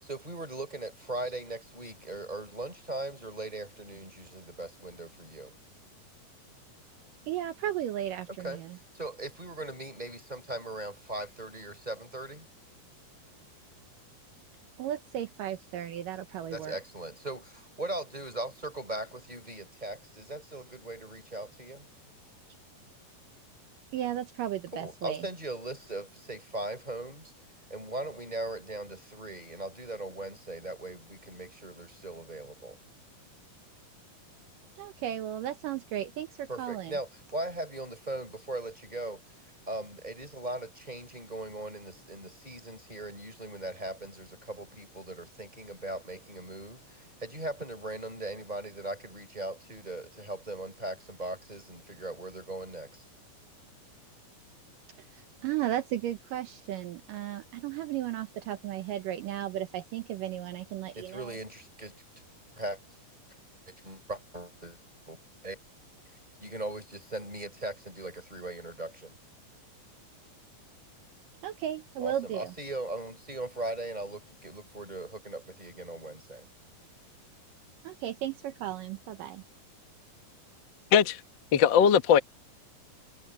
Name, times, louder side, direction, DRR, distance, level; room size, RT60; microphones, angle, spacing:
voice 1, 0.0-5.5 8.4-8.6 8.9-12.5 16.5-21.9 24.7-27.3 27.7-32.8 36.5-39.2 39.7-53.0 61.0-62.0 62.6-62.8 63.7-64.8 65.1-65.2 65.4-65.6 66.4-69.1 72.0-76.5, right 2 dB, 10° right, 4.7 m, -39 dB
voice 2, 7.3-8.8 14.8-16.8 23.9-25.3 34.8-36.9 55.1-61.4 71.4-72.5 77.8-79.4, right 12 dB, 70° right, 2.3 m, -35 dB
voice 3, 81.5-82.2, left 8 dB, 90° left, 1.0 m, -20 dB
omnidirectional pair, 4.4 m